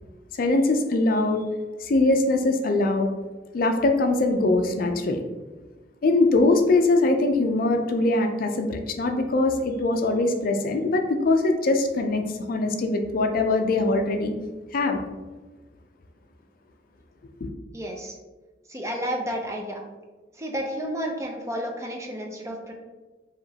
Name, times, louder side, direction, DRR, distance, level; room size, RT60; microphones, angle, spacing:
voice 1, 0.3-1.4 1.8-3.1 3.5-5.2 6.0-14.3 14.7-15.0 17.4-17.5, left 2 dB, 55° left, 4 dB, 0.4 m, -22 dB
voice 2, 17.7-18.1 18.7-19.8 20.4-22.7, equal, 15° right, 1 dB, 0.5 m, -31 dB
4.9 x 2.9 x 2.8 m, 1.2 s
head